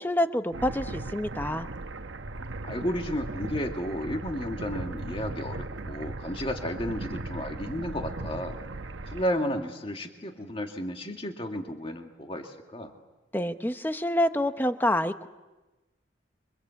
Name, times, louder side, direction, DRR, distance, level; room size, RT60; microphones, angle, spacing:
voice 1, 0.0-1.7 13.3-15.3, left 1 dB, 10° left, 9 dB, 0.9 m, -27 dB
sound 1, 0.5-9.2, right 2 dB, 75° right, 1.1 m, -37 dB
voice 2, 2.6-8.6 9.1-12.9, equal, 30° left, 4 dB, 2.2 m, -33 dB
28.5 x 24.5 x 8.3 m, 1.1 s
head